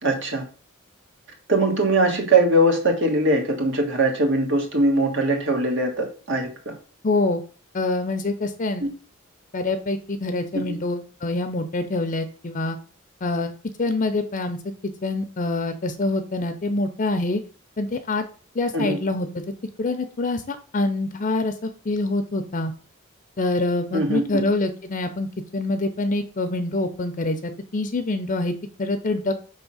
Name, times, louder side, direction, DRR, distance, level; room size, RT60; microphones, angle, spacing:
voice 1, 0.0-0.4 1.5-6.7 8.8-8.9 10.5-10.6 18.7-19.0 23.9-24.4, right 1 dB, 60° right, 2 dB, 1.5 m, -21 dB
voice 2, 7.0-7.4 7.7-8.9 9.5-12.8 13.2-13.5 13.8-17.4 17.8-18.2 18.5-19.3 19.8-22.7 23.4-25.3 25.5-28.5 28.8-29.3, left 2 dB, 35° left, 8 dB, 0.5 m, -25 dB
5.3 x 3.5 x 5.4 m, 0.39 s
head